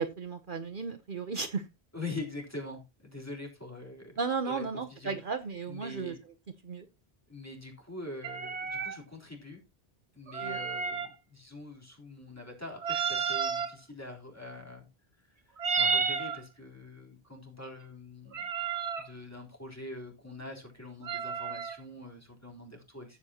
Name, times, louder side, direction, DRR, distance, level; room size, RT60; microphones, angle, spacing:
voice 1, 0.0-1.6 4.2-6.1 6.6-6.9 10.4-10.6, right 5 dB, 55° right, 7 dB, 1.0 m, -34 dB
voice 2, 1.9-4.1 4.4-5.2 5.7-6.2 7.3-9.6 10.1-14.9 15.2-18.5 19.0-23.2, left 2 dB, 15° left, 0 dB, 3.8 m, -44 dB
sound 1, 8.2-9.0 10.3-11.1 12.8-13.7 15.6-16.4 18.3-19.1 21.0-21.8, right 5 dB, 90° right, 1.5 m, -31 dB
14.5 x 8.4 x 2.9 m, 0.25 s
omnidirectional pair, 1.1 m